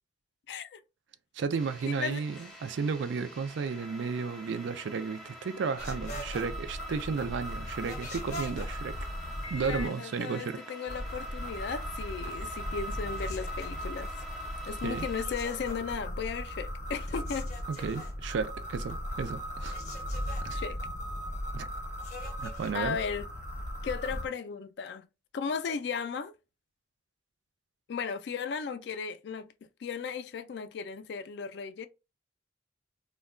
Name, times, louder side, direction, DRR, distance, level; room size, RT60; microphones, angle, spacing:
voice 1, 0.5-0.8 1.9-2.2 9.6-14.1 14.6-17.5 20.5-20.8 22.7-23.3 23.8-25.1 25.3-26.3 27.9-29.5 29.8-31.9, left 6 dB, 60° left, 0.3 m, -35 dB
voice 2, 1.3-9.0 9.5-10.6 14.8-15.1 17.7-19.8 20.4-20.6 21.5-21.7 22.4-23.0, right 5 dB, 75° right, 0.3 m, -33 dB
sound 1, 1.5-15.2, equal, ahead, 0.5 m, -48 dB
sound 2, 5.8-9.9 10.9-24.3, equal, 40° left, 0.7 m, -37 dB
2.2 x 2.2 x 3.6 m
head